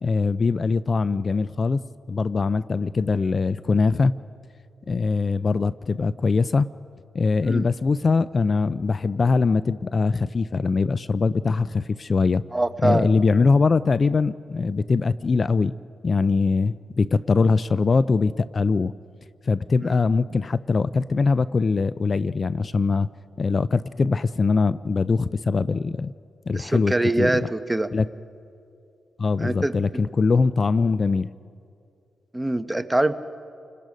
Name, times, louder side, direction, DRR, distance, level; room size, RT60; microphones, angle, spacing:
voice 1, 0.0-1.8 2.1-4.1 4.9-6.7 7.1-12.4 12.8-15.8 16.0-18.9 19.5-23.1 23.4-26.1 26.5-27.3 27.9-28.1 29.2-31.3, left 4 dB, 45° left, 17 dB, 0.4 m, -22 dB
voice 2, 12.5-13.1 19.9-20.0 26.5-27.9 29.4-30.0 32.3-33.1, right 1 dB, 15° right, 10 dB, 1.0 m, -24 dB
30.0 x 19.5 x 5.2 m, 2.5 s
cardioid pair, 60°, 0 cm